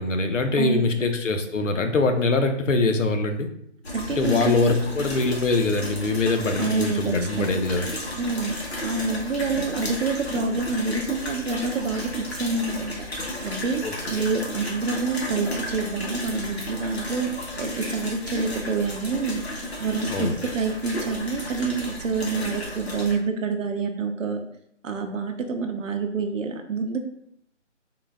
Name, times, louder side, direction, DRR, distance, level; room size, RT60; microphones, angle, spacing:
voice 1, 0.0-3.5 4.1-7.9 13.8-14.3 20.1-20.3, left 3 dB, 80° left, 6 dB, 0.6 m, -23 dB
voice 2, 0.6-1.0 3.9-4.6 4.9-5.1 6.6-7.5 8.2-8.6 8.8-13.1 13.4-17.3 17.6-24.5 24.8-27.0, right 4 dB, 90° right, 5 dB, 0.6 m, -27 dB
sound 1, 3.8-23.1, left 1 dB, 55° left, 0.9 m, -33 dB
3.8 x 2.2 x 3.4 m, 0.72 s
figure-of-eight pair, 180°, 37 cm